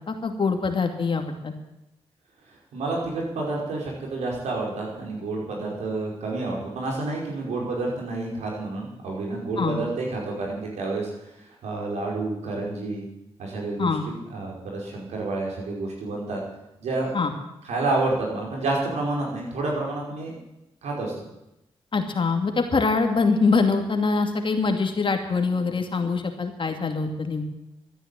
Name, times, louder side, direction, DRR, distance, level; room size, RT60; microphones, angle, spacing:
voice 1, 0.1-1.5 9.6-9.8 13.8-14.0 17.1-17.3 21.9-27.5, left 4 dB, 50° left, 5 dB, 2.5 m, -24 dB
voice 2, 2.7-11.3 11.6-13.1 13.4-13.9 14.3-16.4 16.8-17.1 17.6-20.3 20.8-21.2, right 2 dB, 85° right, -1 dB, 5.2 m, -29 dB
13.5 x 9.9 x 9.0 m, 0.88 s
cardioid pair, 55°, 11 cm